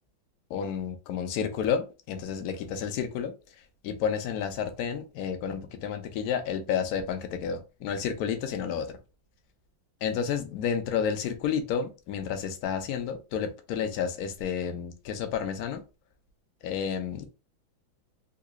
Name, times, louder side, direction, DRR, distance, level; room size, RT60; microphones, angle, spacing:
voice 1, 0.5-3.3 3.8-8.9 10.0-15.8 16.6-17.3, left 7 dB, 70° left, 0.9 m, -31 dB
3.8 x 2.9 x 2.3 m
omnidirectional pair, 2.2 m